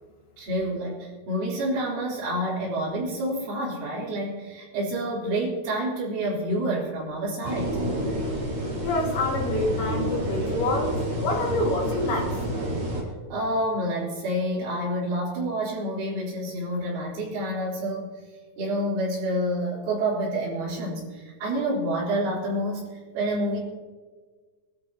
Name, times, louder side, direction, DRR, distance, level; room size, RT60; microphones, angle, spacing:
voice 1, 0.4-7.8 13.3-18.1 18.6-23.6, right 1 dB, 75° right, -11 dB, 6.4 m, -28 dB
sound 1, 7.4-13.0, right 1 dB, 45° right, 6.1 m, -29 dB
voice 2, 8.8-10.9 11.2-12.4, left 2 dB, 60° left, -1 dB, 3.8 m, -27 dB
26.5 x 12.5 x 3.0 m, 1.4 s
omnidirectional pair, 5.6 m